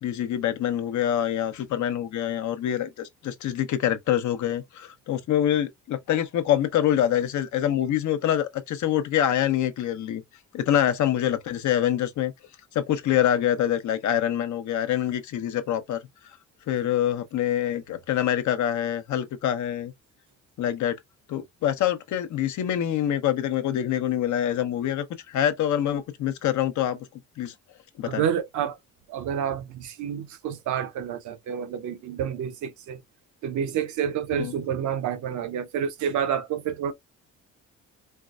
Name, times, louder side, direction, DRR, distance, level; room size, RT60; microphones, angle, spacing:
voice 1, 0.0-10.2 10.5-12.3 12.7-16.0 16.7-19.9 20.6-21.0 21.3-27.5 28.0-28.2 34.3-34.5, left 11 dB, 70° left, 0.8 m, -25 dB
voice 2, 28.0-28.8 29.1-33.0 33.4-36.9, right 8 dB, 75° right, 0.8 m, -29 dB
4.4 x 2.1 x 2.4 m
cardioid pair, 90°, 30 cm